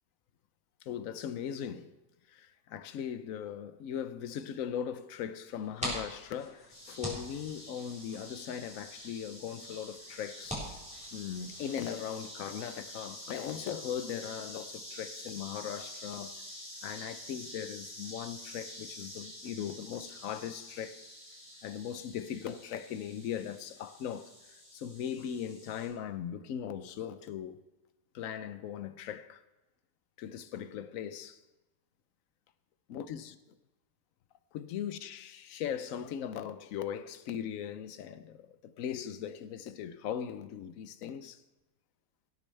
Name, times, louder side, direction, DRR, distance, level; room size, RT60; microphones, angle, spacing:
voice 1, 0.8-1.9 2.3-10.6 11.1-16.3 16.8-20.9 21.6-24.3 24.7-27.6 28.1-29.4 30.2-31.4 32.9-33.4 34.5-41.4, left 9 dB, 65° left, 0.8 m, -39 dB
sound 1, 5.5-11.8, equal, 5° right, 3.9 m, -44 dB
sound 2, 6.7-25.9, left 1 dB, 80° left, 5.7 m, -48 dB
17.5 x 8.7 x 3.3 m
omnidirectional pair, 1.9 m